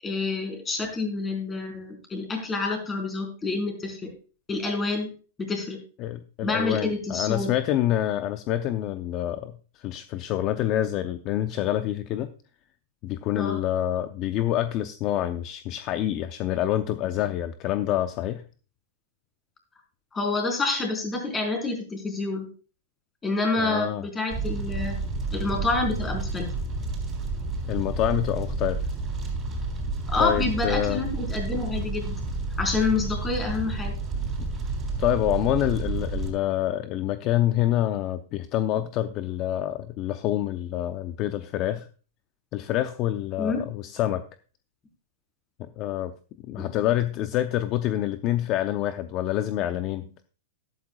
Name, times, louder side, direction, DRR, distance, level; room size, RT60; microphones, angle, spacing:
voice 1, 0.0-4.1 4.5-5.1 5.4-5.8 6.4-7.5 13.3-13.6 20.1-22.5 23.2-25.0 25.3-26.5 30.1-32.2 32.6-33.9 43.4-43.6 46.6-46.7, left 3 dB, 15° left, 2 dB, 4.3 m, -28 dB
voice 2, 6.0-12.3 13.0-18.4 23.6-24.0 27.7-28.9 30.2-31.0 34.4-34.5 35.0-41.9 42.5-44.2 45.6-46.1 46.4-50.1, left 13 dB, 40° left, 10 dB, 0.6 m, -27 dB
Fire, 24.3-36.3, right 3 dB, 20° right, 4.1 m, -30 dB
12.5 x 12.0 x 2.4 m, 0.38 s
hypercardioid pair, 135°, 0 cm